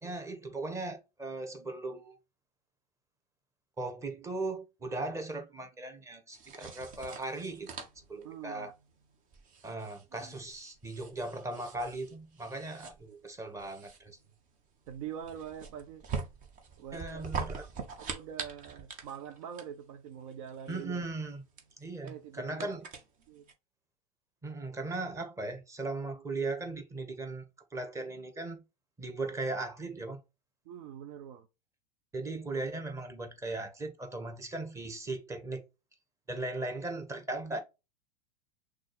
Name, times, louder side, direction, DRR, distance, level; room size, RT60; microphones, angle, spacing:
voice 1, 0.0-2.2 3.8-8.7 9.6-14.2 16.9-17.7 20.7-21.4 21.8-22.8 24.4-27.5 27.7-28.6 29.0-30.2 32.1-35.6 36.3-37.6, right 2 dB, 15° right, 1.2 m, -38 dB
sound 1, 6.3-23.5, right 5 dB, 40° right, 1.2 m, -44 dB
voice 2, 8.2-8.7 10.1-10.4 12.8-12.9 14.9-16.1 16.8-17.3 18.0-21.1 22.0-22.7 23.3-23.4 30.7-31.5, right 9 dB, 55° right, 0.6 m, -44 dB
6.1 x 2.5 x 3.1 m
hypercardioid pair, 90°, 21 cm